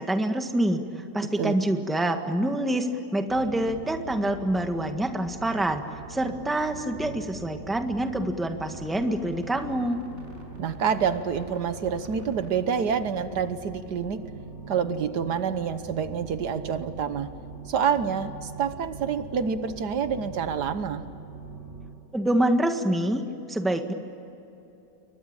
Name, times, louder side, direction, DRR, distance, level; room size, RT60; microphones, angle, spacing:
voice 1, 0.0-5.8 6.1-10.0 22.1-23.2 23.5-23.9, right 1 dB, ahead, 6 dB, 1.4 m, -26 dB
sound 1, 3.3-21.9, right 3 dB, 40° right, 5.7 m, -42 dB
voice 2, 10.6-14.2 14.7-17.3 17.7-21.0, right 7 dB, 75° right, 11 dB, 1.7 m, -27 dB
28.5 x 23.5 x 8.9 m, 2.9 s
omnidirectional pair, 1.8 m